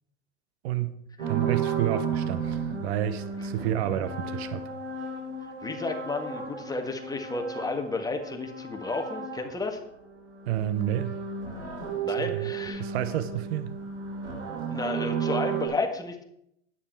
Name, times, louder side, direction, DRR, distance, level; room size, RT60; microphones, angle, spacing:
voice 1, 0.6-1.0 1.3-4.6 10.5-11.2 12.2-12.5 12.8-13.7, right 11 dB, 70° right, 1.0 m, -30 dB
sound 1, 1.2-9.8 10.1-15.7, right 6 dB, 85° right, 3.5 m, -33 dB
voice 2, 5.6-9.8 12.0-12.8 14.7-16.2, left 3 dB, 10° left, 1.7 m, -32 dB
9.8 x 9.4 x 4.6 m
hypercardioid pair, 100°, 34 cm